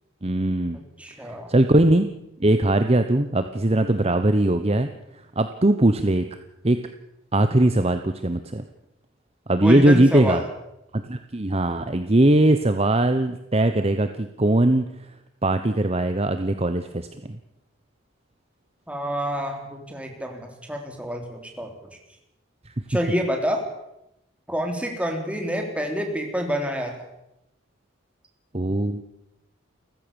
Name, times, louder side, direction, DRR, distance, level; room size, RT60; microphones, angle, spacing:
voice 1, 0.2-0.8 1.2-2.1 2.4-4.9 5.4-6.4 6.6-6.8 7.3-8.6 9.5-10.4 10.9-14.9 15.4-17.4 22.7-22.8 28.5-29.0, right 1 dB, 30° right, 9 dB, 1.0 m, -20 dB
voice 2, 1.0-1.5 9.6-10.4 18.9-21.7 22.9-23.6 24.5-26.9, equal, 5° right, 3 dB, 3.8 m, -27 dB
29.5 x 15.5 x 7.1 m, 0.86 s
head